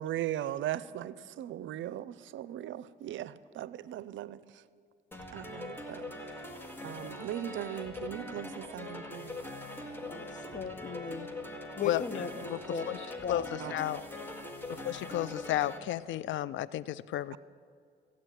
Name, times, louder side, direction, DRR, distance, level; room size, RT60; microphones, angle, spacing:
voice 1, 0.0-4.7 5.3-9.4 13.6-13.8 17.3-17.4, right 12 dB, 75° right, 18 dB, 0.5 m, -39 dB
sound 1, 5.1-15.8, left 1 dB, 10° left, 1.9 m, -42 dB
voice 2, 10.0-11.3 11.7-12.9 13.2-13.5, left 6 dB, 40° left, 11 dB, 1.0 m, -37 dB
voice 3, 13.3-14.0 14.8-17.4, left 13 dB, 70° left, 19 dB, 0.4 m, -32 dB
15.5 x 8.6 x 9.2 m, 2.2 s
cardioid pair, 90°, 20 cm